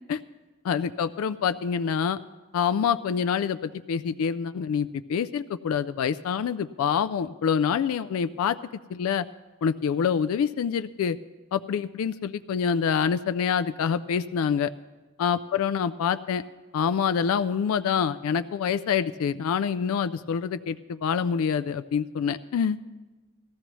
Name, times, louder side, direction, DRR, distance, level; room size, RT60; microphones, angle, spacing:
voice 1, 0.7-2.2 2.5-8.6 8.9-9.2 9.6-11.2 11.5-14.7 15.2-16.4 16.7-22.8, left 7 dB, 65° left, 13 dB, 0.3 m, -26 dB
17.5 x 13.5 x 3.0 m, 1.2 s
head